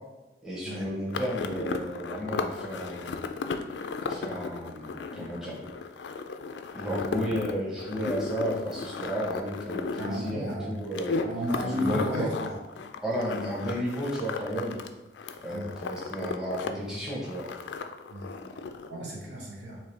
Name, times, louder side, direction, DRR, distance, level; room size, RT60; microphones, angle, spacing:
voice 1, 0.4-3.2 4.0-5.6 6.7-11.2 11.6-12.3 13.0-14.8 15.4-17.5, equal, 5° right, -6 dB, 1.0 m, -33 dB
sound 1, 1.1-14.9 15.2-16.7 16.9-18.9, left 4 dB, 80° left, 0.3 m, -35 dB
voice 2, 9.9-10.8 11.2-12.6 15.5-15.8 18.1-18.3 18.9-19.8, equal, 85° right, -4 dB, 1.2 m, -33 dB
4.6 x 2.9 x 3.3 m, 1.1 s
head